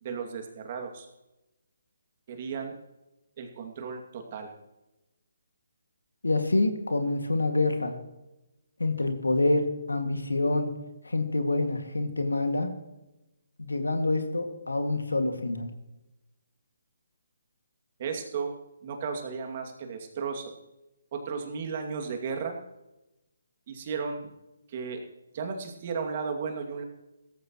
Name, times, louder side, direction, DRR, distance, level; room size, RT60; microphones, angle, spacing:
voice 1, 0.0-1.1 2.3-2.8 3.4-4.5 18.0-18.5 18.8-20.5 21.1-22.6 23.7-24.3 24.7-25.0 25.3-26.8, right 5 dB, 40° right, 3 dB, 2.4 m, -34 dB
voice 2, 6.2-7.9 8.8-9.6 9.9-10.7 11.0-12.7 13.6-15.7, left 2 dB, 90° left, 6 dB, 2.2 m, -26 dB
17.0 x 14.5 x 3.1 m, 0.95 s
figure-of-eight pair, 150°, 0 cm